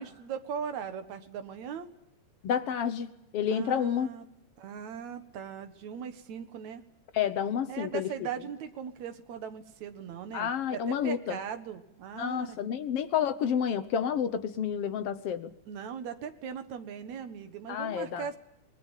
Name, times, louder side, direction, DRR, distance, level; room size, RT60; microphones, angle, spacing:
voice 1, 0.0-1.9 3.5-4.3 4.6-6.8 7.7-12.6 15.7-18.4, right 7 dB, 70° right, 8 dB, 2.8 m, -39 dB
voice 2, 2.4-4.1 7.1-8.1 10.3-11.4 12.2-15.5 17.7-18.2, left 8 dB, 60° left, 11 dB, 1.8 m, -30 dB
27.0 x 21.0 x 7.4 m, 0.83 s
omnidirectional pair, 3.4 m